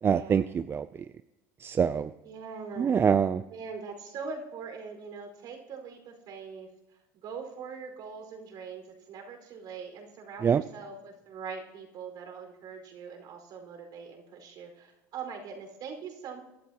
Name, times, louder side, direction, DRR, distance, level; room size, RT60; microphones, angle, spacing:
voice 1, 0.0-1.1 1.6-2.1 2.8-3.4 10.4-10.6, right 7 dB, 30° right, 13 dB, 0.4 m, -25 dB
voice 2, 2.2-3.0 3.5-6.7 7.2-16.4, right 5 dB, 55° right, 2 dB, 4.9 m, -42 dB
23.5 x 12.5 x 3.0 m, 0.99 s
supercardioid pair, 95°, 8 cm